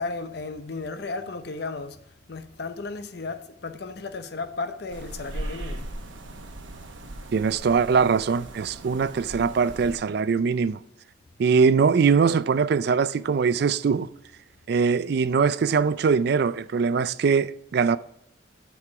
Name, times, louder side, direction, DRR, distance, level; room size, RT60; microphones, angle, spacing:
voice 1, 0.0-2.0 2.3-6.3, left 3 dB, 55° left, 0.7 m, -34 dB
sound 1, 4.9-10.0, right 1 dB, 75° right, 1.1 m, -38 dB
voice 2, 7.3-10.8 11.4-14.1 14.7-18.0, right 5 dB, 55° right, 0.3 m, -22 dB
8.4 x 4.7 x 5.8 m
head